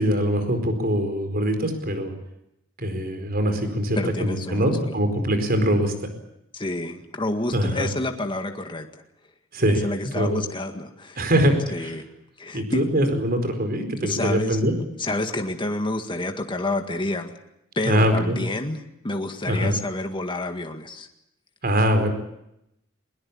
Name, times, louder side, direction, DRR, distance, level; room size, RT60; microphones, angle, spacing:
voice 1, 0.0-2.1 2.8-5.9 7.5-7.9 9.5-9.9 10.1-10.4 11.2-12.0 12.5-14.7 17.8-18.4 19.5-19.7 21.6-22.1, equal, 45° right, 7 dB, 4.6 m, -23 dB
voice 2, 4.0-4.9 6.5-8.9 9.8-11.3 11.7-12.1 12.4-13.0 14.0-14.6 15.0-17.3 17.8-18.8 19.0-21.1, left 2 dB, 25° left, 5 dB, 1.9 m, -29 dB
21.5 x 21.0 x 8.6 m, 0.82 s
head